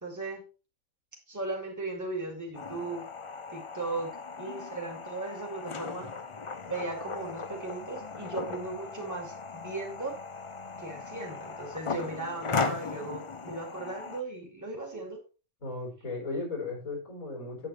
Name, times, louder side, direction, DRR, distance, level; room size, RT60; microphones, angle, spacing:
voice 1, 0.0-0.4 1.3-3.0 3.5-4.1 4.4-6.1 6.7-10.2 10.8-15.2, right 3 dB, 10° right, 0 dB, 2.4 m, -37 dB
sound 1, 2.5-14.2, left 4 dB, 40° left, 0.4 m, -37 dB
voice 2, 15.6-17.7, left 3 dB, 80° left, 0 dB, 4.7 m, -36 dB
8.8 x 8.5 x 3.2 m, 0.32 s
omnidirectional pair, 1.4 m